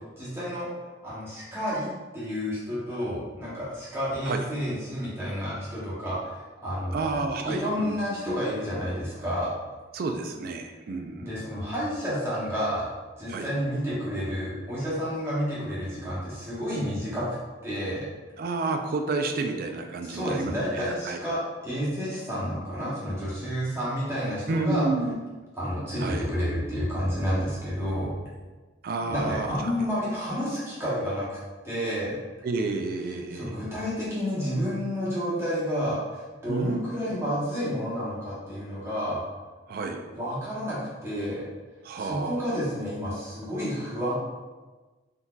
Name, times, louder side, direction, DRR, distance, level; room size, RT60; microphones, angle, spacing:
voice 1, 0.2-7.1 7.4-9.5 11.2-12.9 13.2-17.3 17.6-18.0 20.0-24.9 25.6-28.1 29.1-31.4 31.6-32.2 33.3-39.2 40.1-41.4 42.0-44.1, equal, 15° right, -9 dB, 1.0 m, -30 dB
voice 2, 6.9-8.0 9.9-11.3 13.3-13.5 18.4-21.2 24.5-25.2 26.0-26.2 28.8-29.7 32.4-33.5 36.5-36.8 37.1-37.2 39.7-40.0 41.8-42.4, right 3 dB, 50° right, 5 dB, 0.3 m, -30 dB
3.7 x 2.7 x 2.3 m, 1.3 s
head